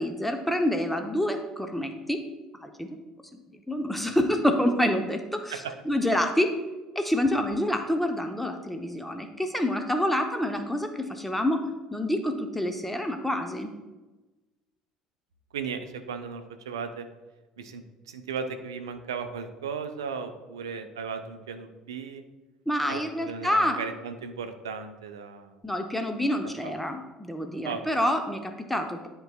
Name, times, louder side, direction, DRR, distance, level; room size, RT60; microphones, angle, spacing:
voice 1, 0.0-2.2 2.6-3.0 3.3-6.5 6.9-13.7 22.7-23.8 25.6-29.1, left 1 dB, 5° left, 5 dB, 0.7 m, -27 dB
voice 2, 15.5-17.1 17.6-22.2 22.9-25.5 26.6-26.7 27.6-28.1, right 5 dB, 75° right, 8 dB, 0.5 m, -36 dB
10.5 x 4.7 x 2.2 m, 1.1 s
figure-of-eight pair, 60°, 2 cm